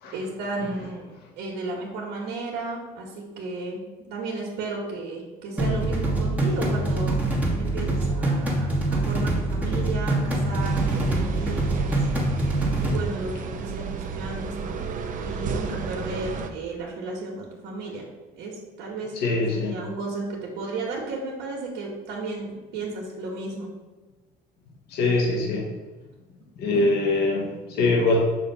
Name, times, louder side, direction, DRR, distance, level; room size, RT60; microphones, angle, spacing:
voice 1, 0.1-7.2 7.6-12.0 12.8-14.8 15.2-18.1 18.3-19.2 19.5-23.7 26.7-26.8, right 3 dB, 85° right, -3 dB, 1.2 m, -34 dB
sound 1, 5.6-13.0, right 2 dB, 10° right, 1.2 m, -24 dB
sound 2, 10.6-16.5, right 5 dB, 50° right, 0.6 m, -32 dB
voice 2, 19.2-19.7 24.9-25.7 26.6-28.2, left 2 dB, 75° left, -1 dB, 1.1 m, -23 dB
6.5 x 2.6 x 5.4 m, 1.2 s
cardioid pair, 110°, 17 cm